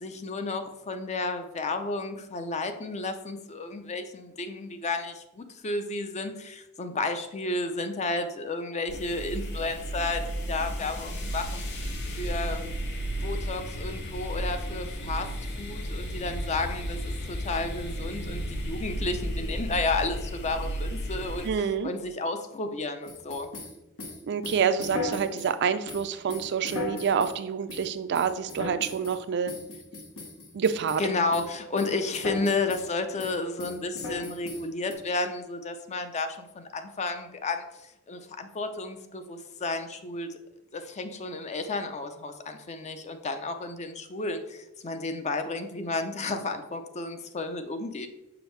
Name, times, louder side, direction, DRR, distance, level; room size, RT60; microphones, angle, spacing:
voice 1, 0.0-12.8 13.2-21.5 21.8-23.5 31.0-37.6 38.1-40.3 40.7-48.1, left 3 dB, 30° left, 8 dB, 0.5 m, -32 dB
sound 1, 8.9-21.5, equal, 50° left, 0.8 m, -33 dB
voice 2, 21.4-21.9 24.3-29.5 30.5-31.0, right 6 dB, 55° right, 10 dB, 0.4 m, -27 dB
sound 2, 23.1-25.5 25.9-27.4 27.7-27.9 28.1-29.2 29.5-31.1 31.3-31.5 31.8-32.9 33.2-34.9, left 2 dB, 80° left, 1.2 m, -37 dB
6.3 x 5.0 x 3.1 m, 0.93 s
head